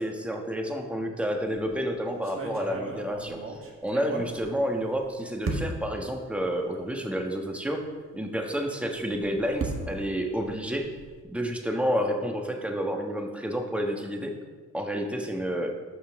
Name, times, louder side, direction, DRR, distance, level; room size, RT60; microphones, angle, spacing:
voice 1, 0.0-3.4 3.8-7.8 8.1-10.9 11.3-14.3 14.7-15.7, equal, 5° right, 2 dB, 1.3 m, -29 dB
sound 1, 1.4-1.7 2.2-5.0 5.4-6.0 6.7-6.8 7.2-7.3 8.9-11.2, right 3 dB, 45° right, 1.6 m, -36 dB
12.5 x 5.7 x 3.6 m, 1.4 s
cardioid pair, 90°, 30 cm